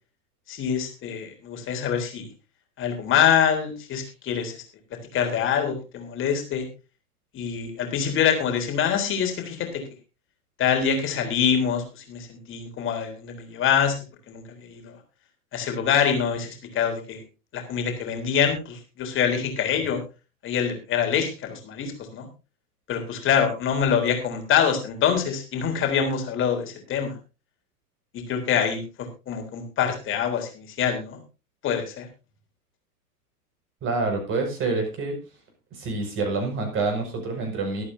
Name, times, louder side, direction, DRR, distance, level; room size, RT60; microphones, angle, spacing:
voice 1, 0.5-2.3 2.8-4.5 5.1-6.7 7.3-9.8 10.6-15.0 15.5-17.2 17.5-20.0 20.4-22.3 22.9-27.1 28.1-31.2 31.6-32.1, left 8 dB, 25° left, 4 dB, 3.7 m, -25 dB
voice 2, 33.8-35.2 35.7-37.8, right 3 dB, 25° right, 3 dB, 5.9 m, -27 dB
23.5 x 8.7 x 2.7 m, 0.31 s
figure-of-eight pair, 100°, 46 cm